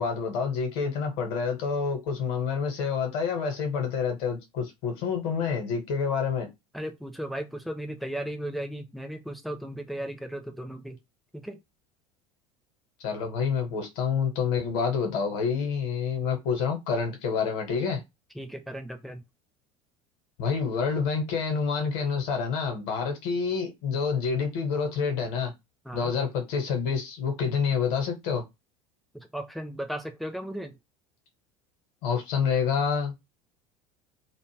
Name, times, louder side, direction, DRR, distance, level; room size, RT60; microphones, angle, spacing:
voice 1, 0.0-6.5 13.0-18.0 20.4-25.5 25.9-28.4 32.0-33.1, left 6 dB, 50° left, 1.0 m, -28 dB
voice 2, 6.7-11.0 11.3-11.6 18.3-19.2 25.8-26.1 29.1-30.8, right 1 dB, ahead, 0.5 m, -36 dB
2.4 x 2.2 x 3.1 m
figure-of-eight pair, 75°, 18 cm